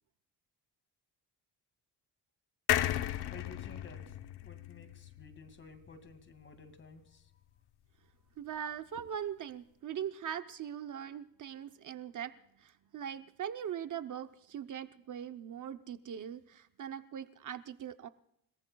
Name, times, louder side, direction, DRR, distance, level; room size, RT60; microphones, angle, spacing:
sound 1, 2.7-6.2 6.6-6.7 6.9-7.0, left 12 dB, 70° left, 0.9 m, -35 dB
voice 1, 3.3-4.0 4.4-7.2, left 4 dB, 30° left, 9 dB, 2.2 m, -53 dB
voice 2, 8.4-12.3 12.6-18.1, right 9 dB, 50° right, 10 dB, 0.7 m, -41 dB
29.5 x 18.5 x 2.3 m, 0.75 s
cardioid pair, 140°, 41 cm